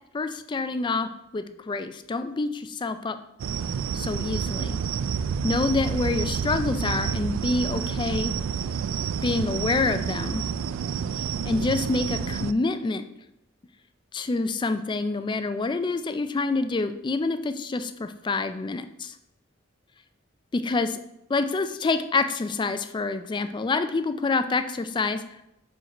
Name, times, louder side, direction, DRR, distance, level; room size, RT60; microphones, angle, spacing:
voice 1, 0.1-1.1 1.3-3.2 3.9-4.8 5.4-8.3 9.2-10.4 11.4-13.0 14.1-19.1 20.5-21.0 21.3-25.2, left 3 dB, 25° left, 10 dB, 0.3 m, -27 dB
sound 1, 3.4-12.5, right 7 dB, 80° right, 0.3 m, -29 dB
5.0 x 4.5 x 4.9 m, 0.84 s
head